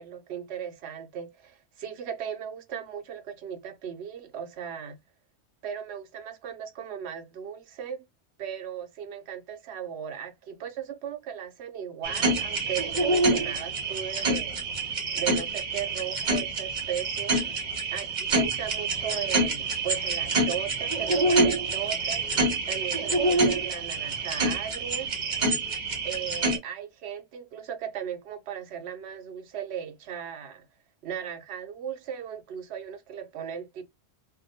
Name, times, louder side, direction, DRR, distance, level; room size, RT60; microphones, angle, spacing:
voice 1, 0.0-5.0 5.6-8.0 8.4-14.6 15.1-17.6 17.9-22.3 22.7-25.1 26.0-30.6 31.0-33.8, right 8 dB, 75° right, 0.9 m, -37 dB
sound 1, 12.0-26.6, right 2 dB, 45° right, 0.8 m, -27 dB
2.2 x 2.1 x 2.6 m
omnidirectional pair, 1.1 m